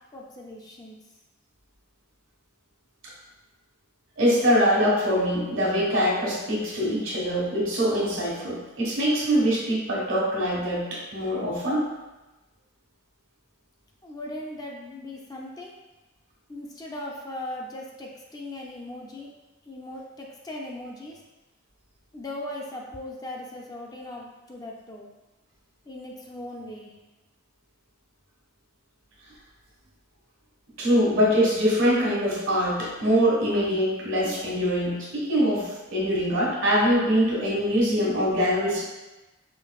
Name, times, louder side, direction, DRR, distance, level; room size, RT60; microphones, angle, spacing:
voice 1, 0.1-1.0 14.0-15.7 16.5-19.3 19.7-21.2 22.1-25.1 25.9-26.9, left 1 dB, 20° left, -2 dB, 0.4 m, -38 dB
voice 2, 4.2-11.9 30.8-38.8, equal, 75° right, -5 dB, 1.4 m, -23 dB
5.2 x 2.8 x 2.3 m, 1.1 s
head